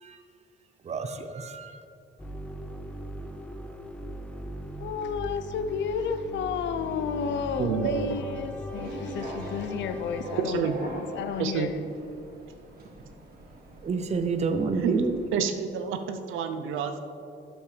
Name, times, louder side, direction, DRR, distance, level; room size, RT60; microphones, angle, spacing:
voice 1, 0.8-1.8 13.8-15.2, right 4 dB, 35° right, 0.6 m, -29 dB
sound 1, 2.2-10.2, equal, 5° left, 0.7 m, -39 dB
voice 2, 4.8-10.6 10.9-11.8, left 6 dB, 65° left, 0.5 m, -32 dB
voice 3, 7.6-8.1 10.4-10.8 11.4-11.7 14.8-15.0 15.3-17.0, right 7 dB, 85° right, 0.6 m, -28 dB
sound 2, 8.7-15.3, right 2 dB, 50° right, 1.9 m, -42 dB
10.0 x 7.0 x 3.2 m
cardioid pair, 90°, 20 cm